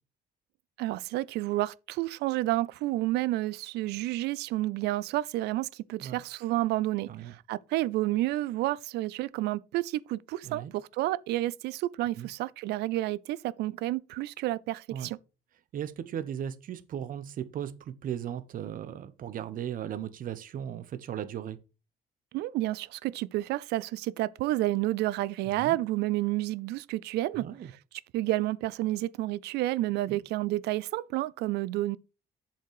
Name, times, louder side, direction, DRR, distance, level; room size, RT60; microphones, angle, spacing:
voice 1, 0.8-15.2 22.3-27.5 28.1-32.0, right 16 dB, 80° right, 0.4 m, -30 dB
voice 2, 15.7-21.6 25.5-25.8 27.3-27.7 30.1-30.2, right 9 dB, 55° right, 0.9 m, -37 dB
7.3 x 5.8 x 4.7 m
cardioid pair, 110°, 17 cm